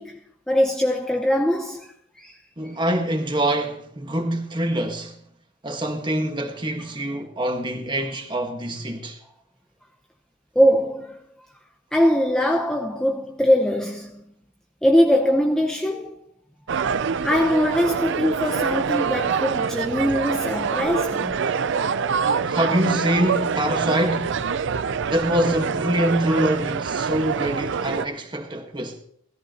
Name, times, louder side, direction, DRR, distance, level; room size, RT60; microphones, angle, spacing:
voice 1, 0.0-2.4 2.6-2.8 10.6-11.2 11.9-14.3 14.8-16.3 17.2-21.5, equal, 5° left, 0.6 m, -22 dB
voice 2, 2.6-5.2 5.6-9.2 22.4-24.4 25.1-29.0, right 1 dB, 20° right, 1.4 m, -25 dB
sound 1, 16.7-28.0, right 6 dB, 60° right, 0.4 m, -25 dB
16.5 x 14.0 x 2.9 m
head